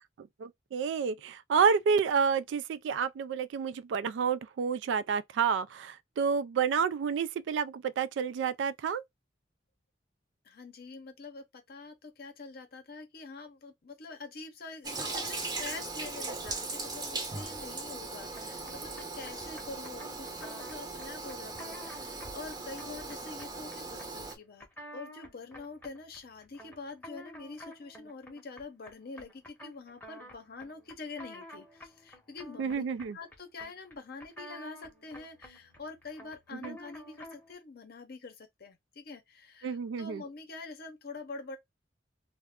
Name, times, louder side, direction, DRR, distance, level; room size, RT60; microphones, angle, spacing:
voice 1, 0.2-9.0 32.6-33.2 36.6-36.8 39.6-40.2, right 6 dB, 80° right, 0.3 m, -29 dB
voice 2, 10.4-24.7 24.9-32.8 33.1-41.6, left 3 dB, 55° left, 0.6 m, -45 dB
Toilet flush, 14.8-24.4, right 3 dB, 20° right, 0.6 m, -39 dB
sound 1, 18.3-37.5, left 1 dB, 10° left, 0.7 m, -51 dB
2.4 x 2.0 x 3.4 m
head